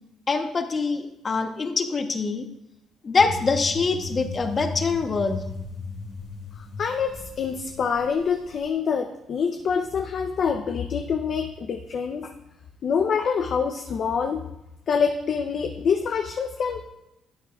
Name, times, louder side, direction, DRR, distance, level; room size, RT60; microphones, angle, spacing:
voice 1, 0.3-2.5 3.0-5.4, left 4 dB, 40° left, 7 dB, 1.0 m, -24 dB
sound 1, 3.2-8.7, left 3 dB, 90° left, 2.8 m, -36 dB
voice 2, 6.6-12.3 12.8-14.5 14.9-16.9, left 6 dB, 60° left, 4 dB, 0.7 m, -26 dB
13.0 x 8.3 x 2.4 m, 0.89 s
cardioid pair, 90°, 0 cm